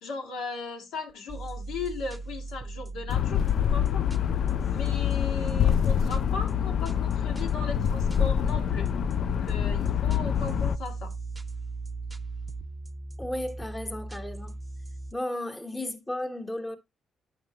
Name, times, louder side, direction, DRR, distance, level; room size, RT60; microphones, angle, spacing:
voice 1, 0.0-3.4 3.7-4.1 4.7-8.9 9.2-11.1, left 4 dB, 90° left, 1.6 m, -37 dB
sound 1, 1.3-15.1, right 2 dB, 15° right, 0.6 m, -38 dB
sound 2, 3.1-10.8, left 9 dB, 65° left, 0.3 m, -26 dB
voice 2, 13.2-14.6 15.1-16.8, left 1 dB, 15° left, 1.1 m, -34 dB
9.0 x 5.7 x 2.8 m
cardioid pair, 90°, 0 cm